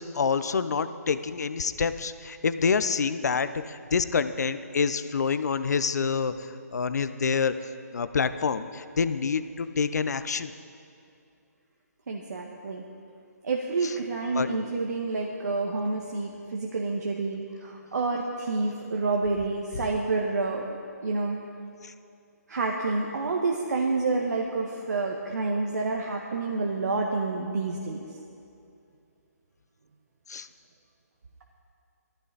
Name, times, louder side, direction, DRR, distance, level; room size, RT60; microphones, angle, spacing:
voice 1, 0.0-7.5 7.9-10.5 13.8-13.9 14.3-14.5 19.7-19.8 21.8-21.9 30.3-30.5, left 5 dB, 70° left, 12 dB, 0.8 m, -27 dB
voice 2, 12.1-12.8 13.4-21.4 22.5-28.0, right 3 dB, 70° right, 0 dB, 1.5 m, -29 dB
19.0 x 14.0 x 4.1 m, 2.5 s
hypercardioid pair, 165°, 9 cm